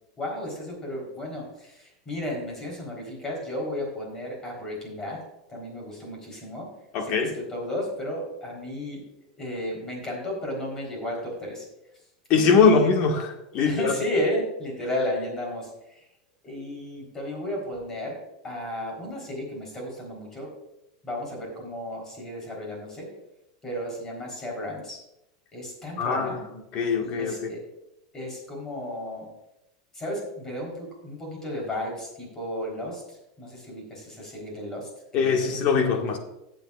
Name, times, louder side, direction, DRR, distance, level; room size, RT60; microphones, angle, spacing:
voice 1, 0.2-5.2 5.5-6.7 7.0-9.0 9.4-11.7 12.5-12.9 13.6-15.7 16.4-18.2 18.4-20.5 21.0-23.1 23.6-25.0 25.5-26.5 27.0-27.6 28.1-29.3 29.9-35.6 35.9-36.0, left 1 dB, 15° left, 3.7 m, -33 dB
voice 2, 6.9-7.3 12.3-13.9 26.0-26.4 26.7-27.5 35.1-36.2, left 5 dB, 40° left, 1.6 m, -22 dB
17.0 x 7.8 x 2.4 m
supercardioid pair, 160°, 3 cm